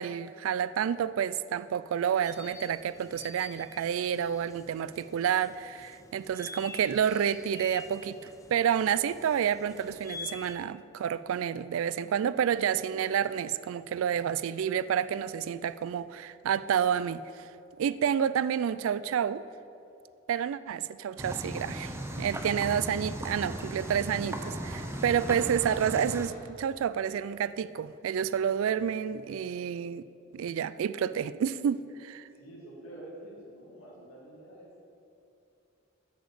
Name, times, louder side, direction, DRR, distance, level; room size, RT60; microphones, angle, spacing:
voice 1, 0.0-17.5 17.8-19.4 20.3-30.0 30.3-32.3, right 8 dB, 75° right, 16 dB, 0.3 m, -29 dB
sound 1, 2.2-10.5, left 4 dB, 15° left, 0.4 m, -48 dB
sound 2, 21.2-26.3, right 1 dB, 10° right, 0.7 m, -37 dB
voice 2, 32.3-34.8, right 1 dB, 75° left, -5 dB, 2.1 m, -47 dB
7.8 x 7.0 x 6.6 m, 2.7 s
head